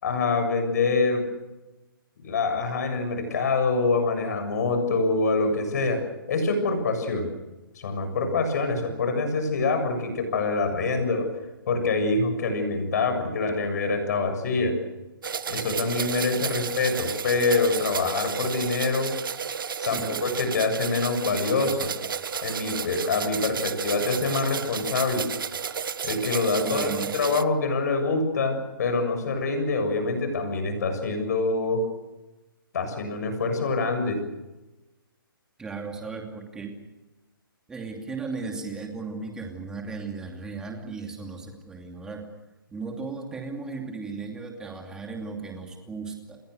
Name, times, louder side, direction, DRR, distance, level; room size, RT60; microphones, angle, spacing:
voice 1, 0.0-1.2 2.2-6.0 6.3-7.3 7.8-11.3 11.7-14.8 15.5-19.1 19.8-21.9 22.4-25.3 26.0-31.9 32.7-34.2, left 3 dB, 45° left, 7 dB, 7.2 m, -25 dB
sound 1, 15.2-27.4, right 7 dB, 65° right, 1.1 m, -32 dB
voice 2, 19.8-20.2 26.6-27.1 35.6-36.8 37.7-42.3 42.7-46.4, right 4 dB, 5° right, 2 dB, 2.8 m, -36 dB
29.0 x 21.5 x 6.5 m, 1.1 s
hypercardioid pair, 165°, 12 cm